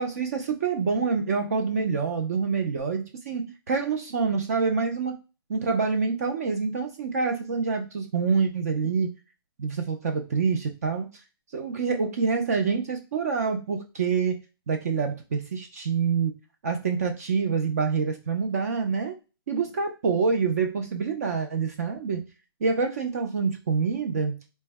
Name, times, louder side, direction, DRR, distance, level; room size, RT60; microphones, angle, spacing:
voice 1, 0.0-5.2 5.5-9.1 9.6-11.1 11.5-14.4 14.7-16.3 16.6-19.2 19.5-22.2 22.6-24.4, right 5 dB, 40° right, 4 dB, 0.4 m, -26 dB
4.3 x 2.1 x 3.3 m, 0.31 s
hypercardioid pair, 170°, 13 cm